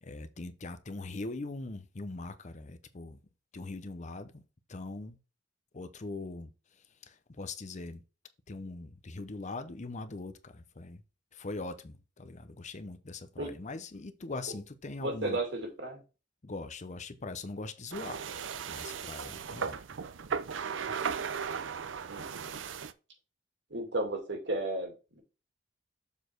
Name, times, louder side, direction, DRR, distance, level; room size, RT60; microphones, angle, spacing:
voice 1, 0.0-3.2 3.5-4.4 4.7-5.2 5.7-6.5 7.0-8.0 8.5-11.0 11.3-15.4 16.4-18.2 18.7-19.8, left 3 dB, 40° left, 0.7 m, -41 dB
voice 2, 15.0-16.0 22.1-22.6 23.7-25.2, right 2 dB, 65° right, 2.3 m, -34 dB
sound 1, 17.9-22.9, right 6 dB, 80° right, 0.5 m, -36 dB
7.1 x 4.4 x 4.5 m
head